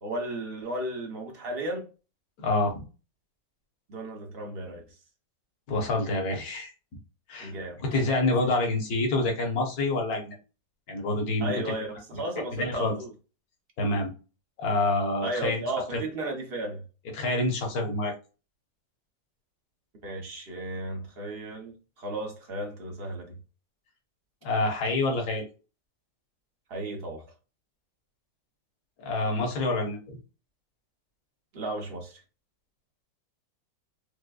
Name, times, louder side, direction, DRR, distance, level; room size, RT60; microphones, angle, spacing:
voice 1, 0.0-1.9 3.9-4.8 7.4-7.8 11.4-13.1 15.2-16.8 20.0-23.4 26.7-27.2 31.5-32.2, right 1 dB, 45° right, 0.8 m, -34 dB
voice 2, 2.4-2.8 5.7-6.7 7.3-7.5 7.8-10.4 10.9-11.5 12.1-13.0 13.8-14.1 14.6-15.6 15.9-16.0 17.1-18.1 24.4-25.5 29.0-30.2, left 2 dB, 60° left, 1.4 m, -27 dB
5.0 x 2.2 x 2.3 m
omnidirectional pair, 1.9 m